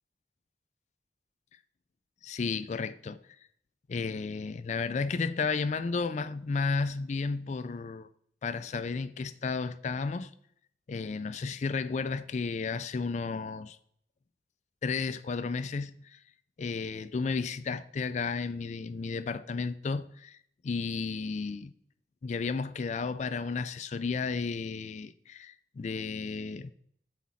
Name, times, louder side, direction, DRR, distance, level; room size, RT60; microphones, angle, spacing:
voice 1, 2.2-3.2 3.9-8.1 8.4-10.3 10.9-13.8 14.8-16.2 16.6-20.4 20.6-21.7 22.2-26.7, left 4 dB, 40° left, 0.3 m, -33 dB
6.2 x 4.2 x 4.1 m
head